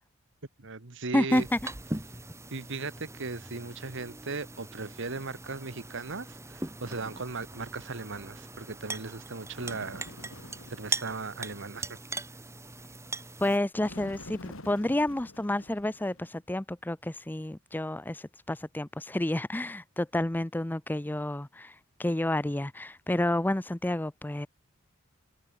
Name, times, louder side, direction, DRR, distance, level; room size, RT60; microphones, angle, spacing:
voice 1, 0.6-1.5 2.5-10.1 10.7-12.0, right 3 dB, 60° right, 1.5 m, -37 dB
voice 2, 1.1-1.6 13.4-24.5, left 1 dB, 10° left, 0.5 m, -30 dB
sound 1, 1.3-13.6, right 2 dB, 15° right, 2.3 m, -40 dB
Bird, 9.5-10.9 13.8-16.3, left 1 dB, 70° left, 6.2 m, -47 dB
head